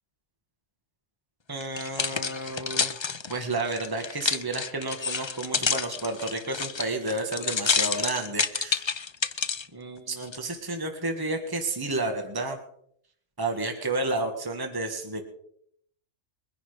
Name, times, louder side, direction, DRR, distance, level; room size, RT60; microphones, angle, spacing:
voice 1, 1.5-3.0 3.3-8.8 9.7-12.6 13.4-15.2, right 2 dB, 15° right, 3 dB, 1.9 m, -31 dB
sound 1, 1.6-9.6 10.2-10.4, left 5 dB, 40° left, 0.4 m, -29 dB
22.0 x 10.5 x 5.1 m, 0.67 s
omnidirectional pair, 1.3 m